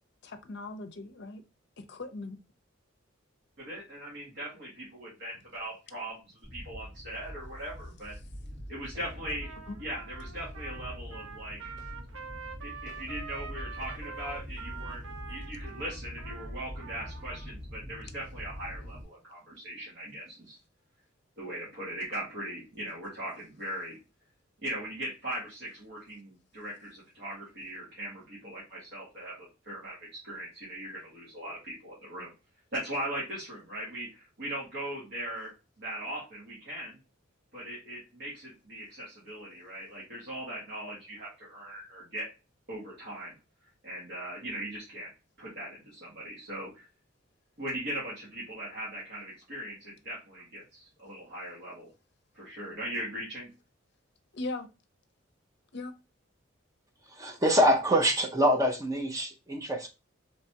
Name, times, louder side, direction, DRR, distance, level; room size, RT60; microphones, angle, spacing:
voice 1, 0.2-1.4 1.8-2.4 9.7-9.8 54.3-54.7 55.7-55.9, left 2 dB, 55° left, 0.6 m, -38 dB
voice 2, 3.6-6.2 6.5-8.2 8.7-9.5 9.8-11.7 12.6-15.0 15.3-20.6 21.4-24.0 24.6-32.3 32.7-35.5 35.8-37.0 37.5-42.3 42.7-43.3 43.8-45.1 45.4-46.9 47.6-51.9 52.3-53.5, right 1 dB, 55° right, 1.4 m, -39 dB
sound 1, 6.4-19.0, equal, 30° right, 2.1 m, -43 dB
Trumpet, 9.2-17.5, right 6 dB, 90° right, 0.6 m, -45 dB
voice 3, 57.1-59.9, equal, 15° right, 0.6 m, -25 dB
3.3 x 3.0 x 2.8 m
head